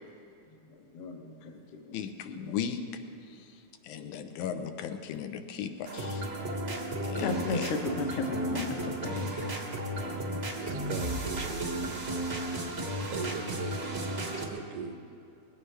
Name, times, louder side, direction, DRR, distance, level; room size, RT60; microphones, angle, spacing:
voice 1, 0.4-2.5 3.9-4.5 7.1-9.7, left 3 dB, 60° left, 4 dB, 1.7 m, -36 dB
voice 2, 1.9-2.8 3.8-6.2 7.0-7.7 10.0-10.4, left 8 dB, 80° left, 8 dB, 2.3 m, -37 dB
sound 1, 5.8-14.5, right 1 dB, 55° right, 0.6 m, -34 dB
voice 3, 10.6-12.0 13.1-13.9 14.5-15.0, right 6 dB, 85° right, 7 dB, 2.4 m, -39 dB
20.5 x 16.0 x 3.3 m, 2.6 s
omnidirectional pair, 3.5 m